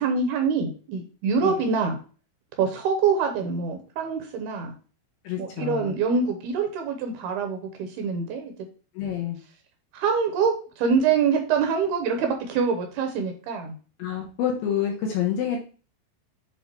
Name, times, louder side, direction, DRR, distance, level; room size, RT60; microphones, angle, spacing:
voice 1, 0.0-2.0 2.6-4.7 5.4-8.5 9.9-13.8, right 5 dB, 75° right, 4 dB, 2.6 m, -25 dB
voice 2, 5.2-5.9 9.0-9.4 14.0-15.6, left 9 dB, 70° left, 0 dB, 2.3 m, -28 dB
8.0 x 2.7 x 4.5 m, 0.38 s
omnidirectional pair, 5.0 m